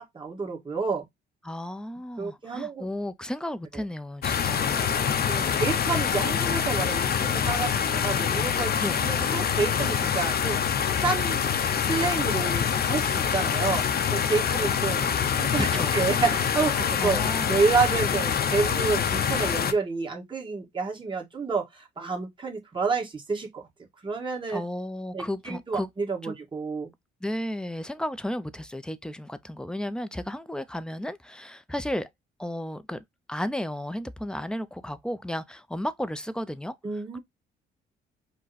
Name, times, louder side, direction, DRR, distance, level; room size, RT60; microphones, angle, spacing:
voice 1, 0.1-1.0 2.2-2.9 5.3-8.7 9.0-10.6 11.0-11.4 11.8-13.8 14.1-15.1 15.4-17.2 17.5-23.6 24.0-24.6 25.1-26.9 36.8-37.2, right 4 dB, 25° right, 1.8 m, -29 dB
voice 2, 1.4-4.9 8.8-9.0 15.6-16.0 17.0-17.6 24.5-25.9 26.2-26.4 27.2-32.1 32.4-36.8 37.1-37.2, left 1 dB, 5° left, 0.5 m, -33 dB
sound 1, 4.2-19.7, left 7 dB, 50° left, 0.7 m, -25 dB
5.2 x 2.2 x 4.0 m
cardioid pair, 90°, 20 cm